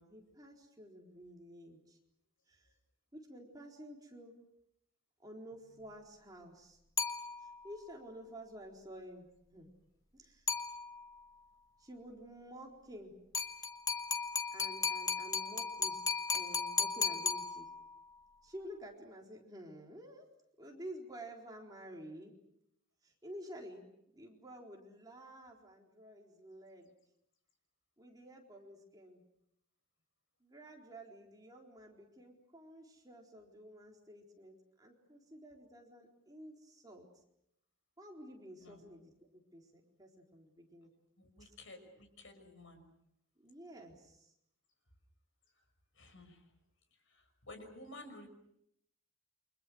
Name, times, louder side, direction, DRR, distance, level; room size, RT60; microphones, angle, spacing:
voice 1, 0.0-2.0 2.5-2.7 3.1-4.3 5.2-6.8 7.4-9.7 10.1-10.5 11.8-13.2 14.5-17.7 18.4-20.3 20.6-22.3 23.0-23.9 24.1-26.9 28.0-29.2 30.4-37.1 38.0-40.9 41.4-41.6 43.4-44.3, right 1 dB, 15° right, 0 dB, 4.1 m, -51 dB
sound 1, 7.0-7.7 10.5-11.2 13.3-18.0, left 5 dB, 15° left, 1.5 m, -36 dB
voice 2, 41.2-41.8 42.2-42.8 46.0-46.4 47.1-47.2 47.5-48.3, left 2 dB, 65° left, 7 dB, 6.1 m, -52 dB
29.5 x 25.5 x 6.4 m, 0.77 s
head